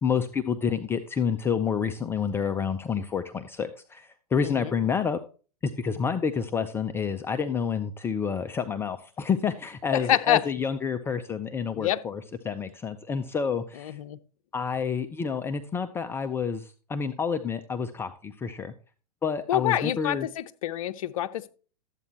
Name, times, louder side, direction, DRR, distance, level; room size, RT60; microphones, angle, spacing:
voice 1, 0.0-5.2 5.6-14.0 14.5-18.7 19.2-20.3, left 6 dB, 10° left, 0.4 m, -29 dB
voice 2, 9.9-10.4 11.7-12.0 13.8-14.2 19.5-21.5, left 12 dB, 55° left, 0.7 m, -27 dB
12.0 x 8.2 x 2.9 m
figure-of-eight pair, 110°, 20 cm